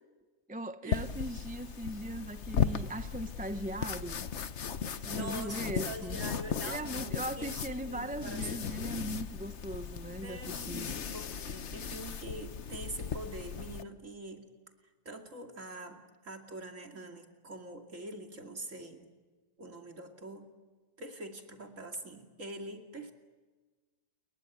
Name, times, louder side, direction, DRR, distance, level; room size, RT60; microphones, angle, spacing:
voice 1, 0.5-4.3 5.0-6.2 6.6-10.9, right 1 dB, 10° right, 0.6 m, -39 dB
sound 1, 0.9-13.8, left 7 dB, 50° left, 1.2 m, -37 dB
voice 2, 4.9-8.8 10.2-14.4 15.0-19.1 19.6-20.5 21.0-23.1, right 2 dB, 50° right, 2.9 m, -44 dB
29.5 x 22.5 x 8.2 m
omnidirectional pair, 1.7 m